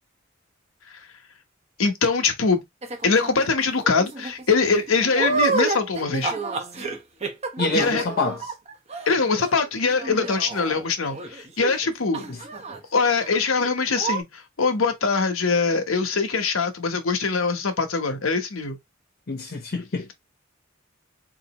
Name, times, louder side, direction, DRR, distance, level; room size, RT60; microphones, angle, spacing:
voice 1, 1.8-2.6 3.0-6.3 7.7-8.1 9.1-12.3 12.9-18.8, left 4 dB, 85° left, 1.0 m, -23 dB
sound 1, 2.8-3.4 3.8-11.9 12.1-12.8 13.0-13.3 13.6-13.7 13.9-14.2, right 3 dB, 30° right, 0.9 m, -30 dB
voice 2, 7.6-8.4 12.3-12.4 19.3-20.1, left 2 dB, 50° left, 0.8 m, -26 dB
4.0 x 2.7 x 2.9 m
head